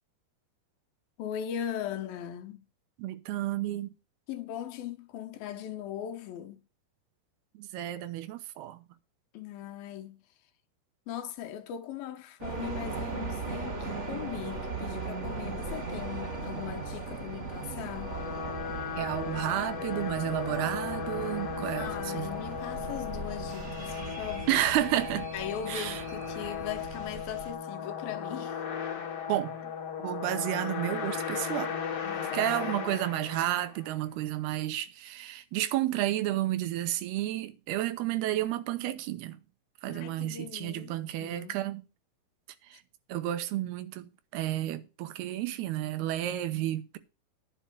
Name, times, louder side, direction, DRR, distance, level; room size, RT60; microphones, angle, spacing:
voice 1, 1.2-2.6 4.3-6.6 9.3-10.2 11.1-18.2 21.7-24.6 25.3-28.6 32.0-32.5 32.8-33.1 39.9-40.9 41.2-41.6, left 10 dB, 75° left, 2.8 m, -39 dB
voice 2, 3.0-3.9 7.5-8.9 19.0-22.3 24.5-25.3 25.7-26.0 29.3-29.6 30.0-31.7 32.3-39.4 39.8-41.8 42.7-42.8 43.1-47.0, right 14 dB, 85° right, 2.9 m, -31 dB
sound 1, 12.4-27.5, right 4 dB, 30° right, 1.4 m, -38 dB
sound 2, 17.7-34.0, left 7 dB, 50° left, 2.3 m, -37 dB
10.0 x 5.6 x 7.5 m
omnidirectional pair, 4.5 m